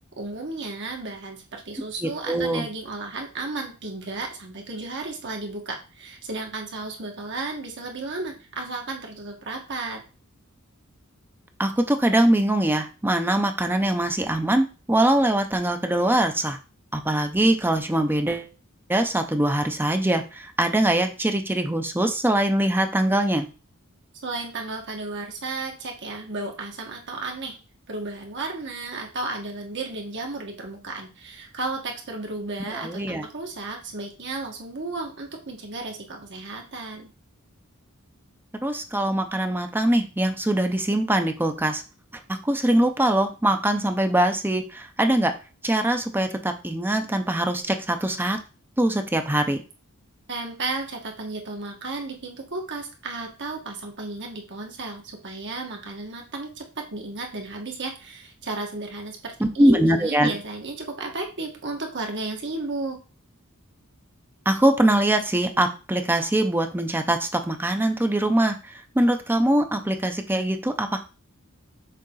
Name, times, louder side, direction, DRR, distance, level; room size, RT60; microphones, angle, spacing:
voice 1, 0.2-10.0 24.2-27.6 27.9-37.1 50.3-63.0, right 3 dB, 55° right, 2 dB, 1.7 m, -33 dB
voice 2, 2.0-2.7 11.6-16.6 16.9-18.5 18.9-23.4 32.7-33.2 38.6-41.8 42.3-45.3 45.6-48.4 48.8-49.6 59.6-60.3 64.5-68.6 69.0-71.0, right 1 dB, 10° right, 6 dB, 0.6 m, -22 dB
6.7 x 3.8 x 3.9 m, 0.32 s
head